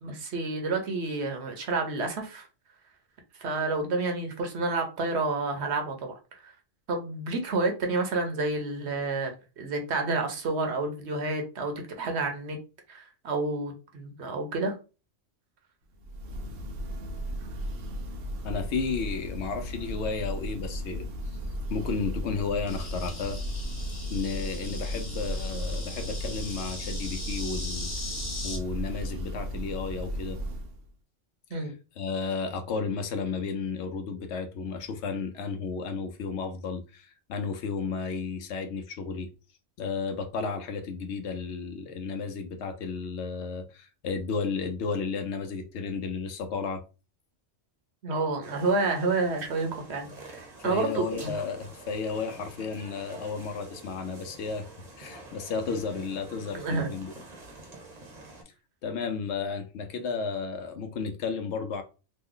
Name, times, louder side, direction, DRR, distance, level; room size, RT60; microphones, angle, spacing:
voice 1, 0.0-2.5 3.4-6.5 6.9-12.6 12.9-14.7 31.5-31.7 48.0-51.4 56.5-56.9, right 3 dB, 65° right, 1.0 m, -29 dB
Church bell, 15.9-30.9, equal, 80° right, 1.0 m, -35 dB
voice 2, 18.4-21.1 21.7-23.4 24.1-27.9 28.4-30.4 31.5-39.3 39.8-46.8 50.6-54.7 55.0-57.1 58.8-61.8, left 5 dB, 70° left, 0.8 m, -33 dB
Insect, 22.6-28.6, left 2 dB, 30° left, 0.7 m, -39 dB
sound 1, 48.4-58.4, right 2 dB, 40° right, 0.8 m, -47 dB
3.1 x 2.1 x 3.7 m
omnidirectional pair, 1.3 m